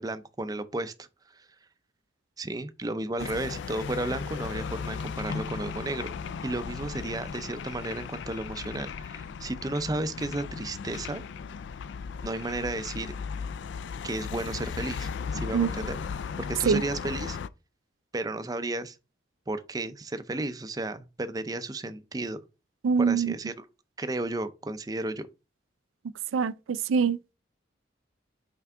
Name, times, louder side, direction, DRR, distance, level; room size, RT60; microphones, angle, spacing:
voice 1, 0.0-1.5 2.4-6.1 6.4-11.2 12.2-13.2 14.0-16.0 16.4-17.4 18.1-19.0 19.5-22.4 23.0-23.7 24.0-25.3, right 2 dB, 20° right, 0.4 m, -33 dB
sound 1, 3.2-17.5, left 6 dB, 65° left, 0.3 m, -36 dB
voice 2, 22.8-23.3 26.3-27.2, right 5 dB, 90° right, 0.4 m, -24 dB
5.7 x 4.6 x 3.6 m
head